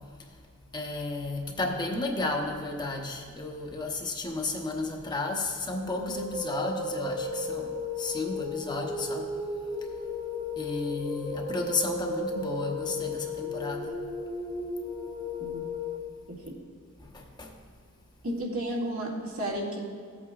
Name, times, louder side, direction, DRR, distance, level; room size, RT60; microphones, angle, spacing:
voice 1, 0.7-9.4 10.6-14.0 17.0-17.6, left 2 dB, 20° left, 1 dB, 0.8 m, -33 dB
sound 1, 5.7-16.0, left 2 dB, 5° right, 1.0 m, -34 dB
voice 2, 18.2-19.9, right 1 dB, 70° right, -5 dB, 2.2 m, -32 dB
16.0 x 8.5 x 2.4 m, 2.2 s
head